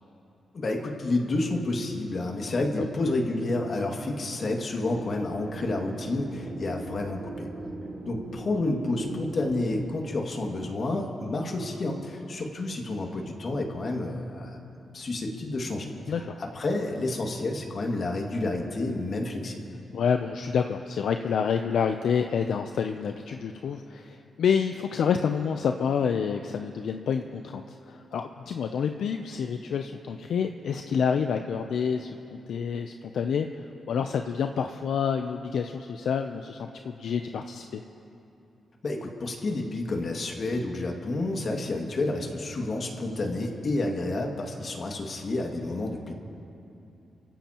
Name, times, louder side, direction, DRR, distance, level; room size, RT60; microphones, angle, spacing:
voice 1, 0.5-7.5 8.1-14.6 14.9-15.9 16.2-19.6 38.8-46.1, left 2 dB, 55° left, 1 dB, 2.2 m, -30 dB
sound 1, 4.8-9.9, right 3 dB, 65° right, 1.1 m, -40 dB
voice 2, 16.1-16.4 19.9-37.8, left 6 dB, 80° left, 6 dB, 0.6 m, -28 dB
28.5 x 15.5 x 3.0 m, 2.7 s
cardioid pair, 80°, 0 cm